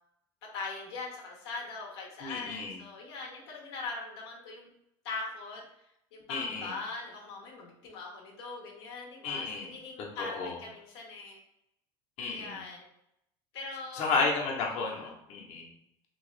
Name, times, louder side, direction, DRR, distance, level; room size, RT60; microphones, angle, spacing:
voice 1, 0.5-4.7 5.0-11.4 12.3-12.9 13.5-14.1 14.7-15.1, left 3 dB, 90° left, -2 dB, 0.9 m, -41 dB
voice 2, 2.2-2.8 6.3-6.7 9.2-9.7 10.2-10.6 12.2-12.6 13.9-15.7, left 4 dB, 60° left, -1 dB, 0.9 m, -32 dB
3.1 x 3.0 x 3.1 m, 0.79 s
supercardioid pair, 95°, 13 cm